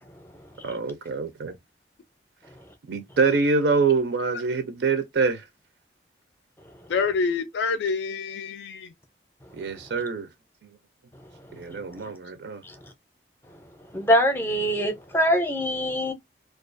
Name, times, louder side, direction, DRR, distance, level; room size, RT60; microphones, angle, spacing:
voice 1, 0.6-1.6 2.9-5.5 9.5-10.3 11.5-12.6, right 4 dB, 75° right, 0.4 m, -25 dB
voice 2, 6.9-8.9, left 5 dB, 75° left, 0.3 m, -27 dB
voice 3, 13.9-16.1, equal, 10° left, 0.5 m, -23 dB
2.3 x 2.3 x 2.4 m
head